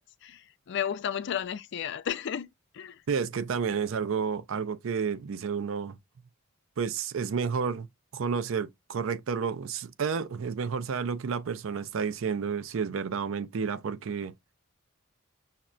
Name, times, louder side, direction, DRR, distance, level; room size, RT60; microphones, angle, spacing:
voice 1, 0.0-2.5 2.7-3.0, left 8 dB, 55° left, 0.4 m, -33 dB
voice 2, 3.1-6.0 6.8-7.9 8.1-14.3, right 6 dB, 70° right, 0.4 m, -31 dB
5.7 x 2.1 x 2.4 m
head